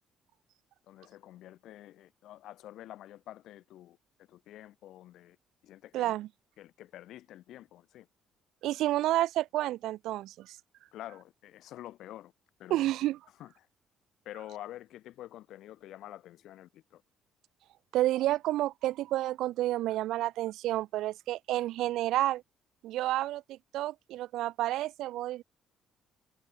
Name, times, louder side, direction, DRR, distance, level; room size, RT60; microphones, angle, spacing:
voice 1, 0.8-5.4 5.6-6.1 6.6-8.1 10.9-12.3 12.6-12.9 13.4-13.7 14.2-17.0, left 13 dB, 65° left, 6.2 m, -48 dB
voice 2, 5.9-6.3 8.6-10.6 12.7-13.2 17.9-22.4 22.8-25.4, right 15 dB, 65° right, 0.6 m, -30 dB
hypercardioid pair, 50°, 0 cm